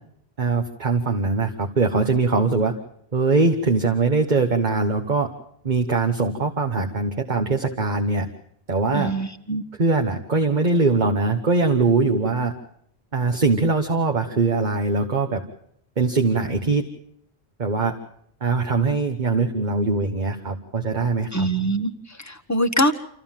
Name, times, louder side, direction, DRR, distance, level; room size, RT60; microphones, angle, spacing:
voice 1, 0.4-2.7 3.1-5.3 5.6-8.3 8.7-9.1 9.8-12.5 13.1-15.4 16.0-16.8 17.6-17.9 18.4-21.5, right 3 dB, 45° right, 4 dB, 1.4 m, -22 dB
voice 2, 8.9-9.6 21.3-21.9 22.3-22.9, right 1 dB, 15° left, 6 dB, 1.3 m, -23 dB
26.5 x 15.0 x 7.4 m, 0.70 s
omnidirectional pair, 1.1 m